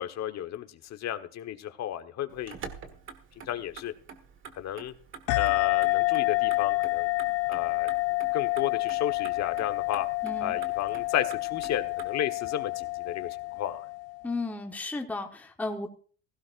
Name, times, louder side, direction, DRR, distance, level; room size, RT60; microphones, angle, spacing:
voice 1, 0.0-2.6 3.5-3.9 4.6-4.9 5.4-7.1 7.5-7.9 8.3-10.1 10.4-13.8, left 11 dB, 40° left, 9 dB, 1.3 m, -33 dB
Motor vehicle (road), 2.3-12.1, right 6 dB, 30° right, 1.6 m, -48 dB
sound 1, 5.3-14.3, left 21 dB, 70° left, 0.9 m, -28 dB
voice 2, 10.2-10.5 14.2-15.9, left 2 dB, 5° left, 3 dB, 1.2 m, -34 dB
16.0 x 16.0 x 2.6 m, 0.41 s
supercardioid pair, 120°, 41 cm